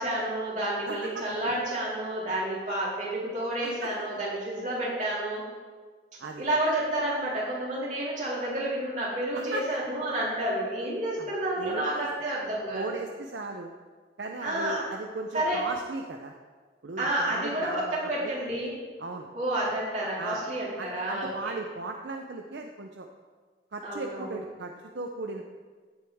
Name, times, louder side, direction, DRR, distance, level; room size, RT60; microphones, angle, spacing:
voice 1, 0.0-5.4 6.4-12.9 14.4-14.8 15.3-15.6 17.0-18.7 19.3-21.5 23.8-24.3, right 1 dB, 40° right, -7 dB, 3.5 m, -30 dB
voice 2, 0.9-1.2 3.6-3.9 6.2-6.5 9.3-9.6 11.2-11.3 11.6-12.1 12.7-13.7 14.2-16.3 16.8-18.3 19.0-19.3 20.2-20.4 20.8-23.1 23.7-25.4, right 3 dB, 70° right, 4 dB, 0.6 m, -37 dB
15.5 x 7.8 x 3.5 m, 1.5 s
head